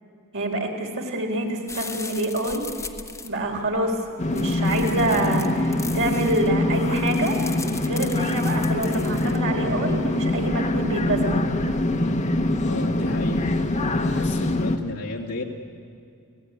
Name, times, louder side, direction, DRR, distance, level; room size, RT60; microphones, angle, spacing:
voice 1, 0.3-2.6 3.2-4.0 4.2-7.4 7.8-11.3, right 1 dB, 60° right, 2 dB, 3.9 m, -26 dB
sound 1, 1.7-9.4, left 4 dB, 15° left, 1.3 m, -39 dB
sound 2, 4.2-14.8, left 2 dB, 35° left, 1.2 m, -24 dB
voice 2, 12.6-13.5 13.9-15.4, left 2 dB, 75° left, -2 dB, 2.2 m, -33 dB
30.0 x 17.5 x 9.6 m, 2.4 s
head